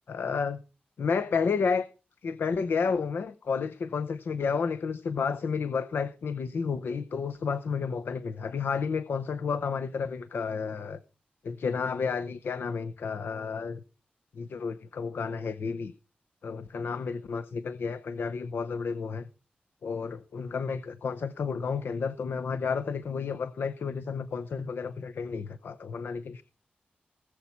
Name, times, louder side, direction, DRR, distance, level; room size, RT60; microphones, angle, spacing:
voice 1, 0.1-0.6 1.0-1.9 2.2-11.0 11.4-13.8 14.4-15.9 16.4-19.3 19.8-26.4, left 5 dB, 90° left, 0.6 m, -31 dB
19.0 x 7.1 x 4.3 m
cardioid pair, 65°, 4 cm